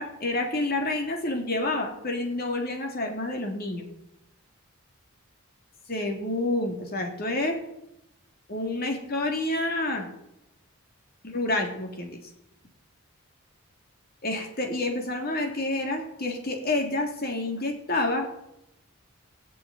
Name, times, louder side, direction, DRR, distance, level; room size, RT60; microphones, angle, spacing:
voice 1, 0.0-3.8 5.9-7.6 8.5-10.1 11.2-12.2 14.2-18.3, left 2 dB, 45° left, 3 dB, 2.9 m, -28 dB
16.5 x 7.2 x 9.2 m, 0.84 s
head